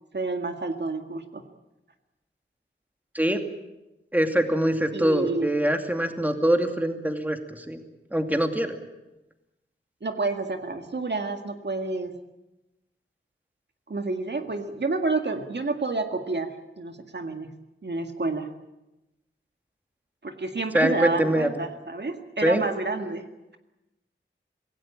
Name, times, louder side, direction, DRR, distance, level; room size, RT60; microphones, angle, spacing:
voice 1, 0.1-1.4 4.9-5.5 10.0-12.2 13.9-17.5 17.8-18.5 20.2-23.3, right 3 dB, 55° right, 5 dB, 2.0 m, -29 dB
voice 2, 4.1-7.8 8.1-8.8 20.7-21.5 22.4-22.6, right 1 dB, 10° right, 5 dB, 2.5 m, -23 dB
26.0 x 17.5 x 8.8 m, 0.98 s
wide cardioid pair, 80°, 21 cm